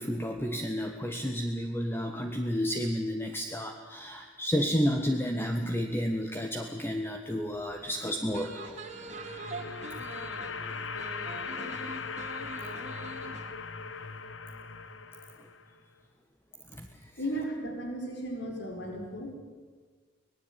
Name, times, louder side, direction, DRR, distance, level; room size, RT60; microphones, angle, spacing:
voice 1, 0.0-8.8 15.4-15.5 16.7-17.1, equal, 10° left, 4 dB, 1.4 m, -31 dB
sound 1, 7.8-13.5, right 2 dB, 35° right, 2.5 m, -43 dB
sound 2, 8.7-15.8, left 5 dB, 80° left, 1.4 m, -39 dB
voice 2, 17.2-19.4, equal, 60° left, 2 dB, 4.7 m, -35 dB
25.5 x 19.0 x 9.0 m, 1.4 s
head